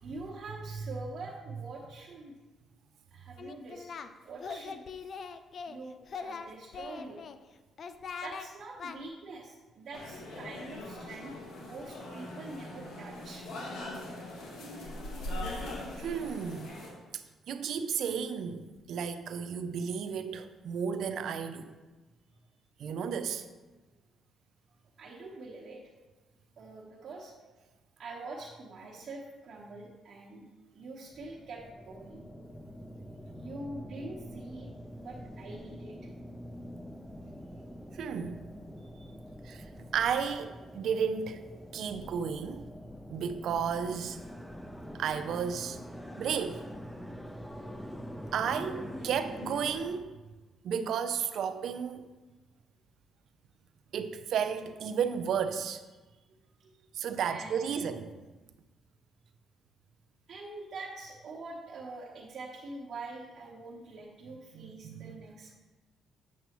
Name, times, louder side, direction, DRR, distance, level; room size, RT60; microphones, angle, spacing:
voice 1, 0.0-2.3 3.1-3.9 4.2-4.8 5.6-7.2 8.2-11.3 11.6-13.5 25.0-25.8 26.6-27.3 28.0-30.5 30.7-32.3 33.3-34.7 35.0-36.1 38.8-39.1 49.0-49.3 56.3-56.7 57.2-58.1 60.3-65.6, right 2 dB, 55° right, -5 dB, 1.1 m, -45 dB
Singing, 3.4-4.1 4.4-5.8 6.1-7.4 7.8-8.5 8.8-9.0, left 5 dB, 55° left, 0.4 m, -41 dB
sound 1, 9.9-16.9, left 1 dB, 80° left, 1.8 m, -41 dB
voice 2, 16.0-16.7 17.5-21.7 22.8-23.5 37.9-38.4 39.4-39.6 39.9-41.4 41.7-42.7 43.1-44.2 44.9-45.8 46.2-46.6 48.3-50.1 50.6-52.1 53.9-55.8 56.9-58.1 64.5-65.2, right 7 dB, 70° right, 10 dB, 0.5 m, -33 dB
sound 2, 31.1-50.0, equal, 5° left, 0.6 m, -45 dB
8.3 x 6.9 x 3.0 m, 1.2 s
cardioid pair, 90°, 0 cm